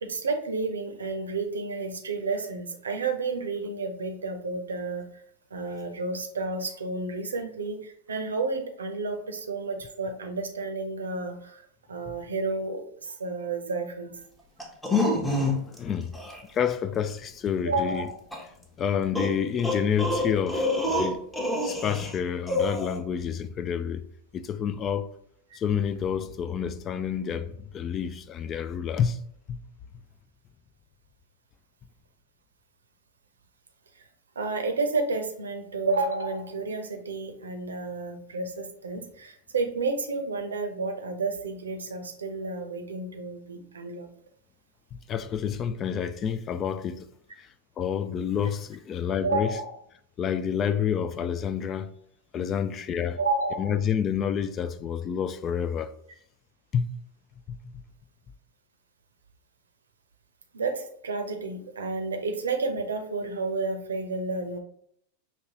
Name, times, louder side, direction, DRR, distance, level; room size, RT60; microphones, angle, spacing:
voice 1, 0.0-5.1 5.5-11.4 11.9-14.1 17.6-18.2 34.4-44.1 49.2-49.8 53.2-53.7 60.5-64.6, right 3 dB, 70° right, 0.7 m, -31 dB
sound 1, 14.6-15.8 16.1-16.4 18.3-18.4 19.1-22.2 22.5-23.0, left 2 dB, 5° left, 0.8 m, -27 dB
voice 2, 15.5-16.2 16.5-18.1 18.8-21.2 21.6-24.1 24.3-25.1 25.5-29.2 29.5-29.6 45.1-47.1 47.4-47.5 47.8-49.5 50.2-51.9 52.3-53.2 53.6-55.9 56.7-56.9 57.5-57.6, left 8 dB, 30° left, 0.3 m, -29 dB
5.3 x 2.9 x 2.9 m
figure-of-eight pair, 90°, 0 cm